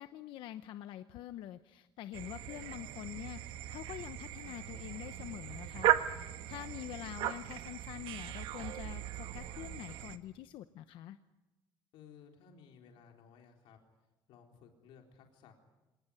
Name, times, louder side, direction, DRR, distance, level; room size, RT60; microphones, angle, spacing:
voice 1, 0.0-5.9 6.5-11.2, left 12 dB, 70° left, 10 dB, 0.9 m, -46 dB
sound 1, 2.1-10.2, right 13 dB, 85° right, 1.3 m, -37 dB
voice 2, 11.9-13.8 14.3-15.5, left 7 dB, 90° left, 3 dB, 3.8 m, -58 dB
26.5 x 19.0 x 9.8 m, 1.0 s
cardioid pair, 180°, 9 cm